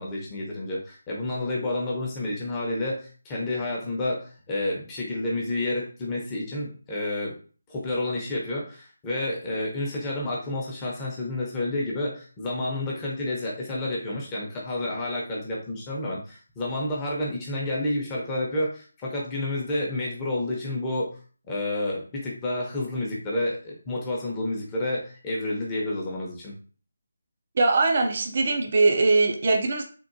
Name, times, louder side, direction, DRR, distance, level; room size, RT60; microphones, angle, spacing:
voice 1, 0.0-7.4 7.7-21.2 21.5-26.5, left 1 dB, 15° left, -4 dB, 0.8 m, -30 dB
voice 2, 27.6-29.8, right 3 dB, 45° right, 3 dB, 0.5 m, -21 dB
3.6 x 2.5 x 2.6 m, 0.40 s
figure-of-eight pair, 160°, 0 cm